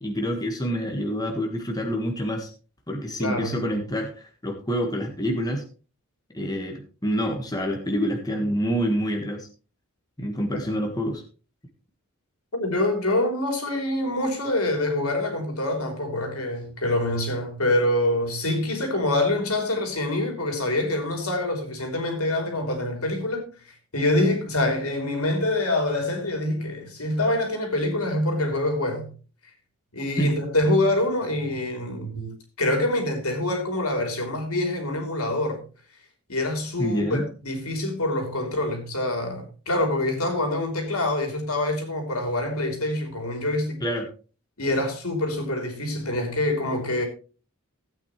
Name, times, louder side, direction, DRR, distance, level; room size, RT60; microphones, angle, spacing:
voice 1, 0.0-2.5 2.9-5.6 6.3-9.5 10.2-11.2 30.2-30.3 36.8-37.2 43.8-44.0, equal, 15° left, 1.6 m, -27 dB
voice 2, 3.2-3.6 12.5-23.5 23.9-29.1 29.9-32.3 32.6-35.6 36.3-43.8 44.6-47.1, left 1 dB, 80° left, 3.4 m, -25 dB
16.0 x 8.7 x 3.2 m
head